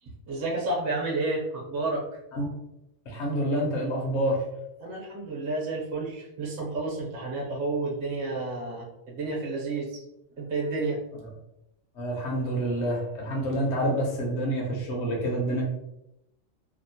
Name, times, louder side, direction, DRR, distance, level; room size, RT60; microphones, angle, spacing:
voice 1, 0.0-2.0 4.8-10.0 10.4-11.0, right 2 dB, 55° right, -4 dB, 1.0 m, -31 dB
voice 2, 3.1-4.4 12.0-15.6, right 1 dB, 65° left, -2 dB, 1.0 m, -27 dB
2.8 x 2.0 x 2.7 m, 0.84 s
omnidirectional pair, 1.3 m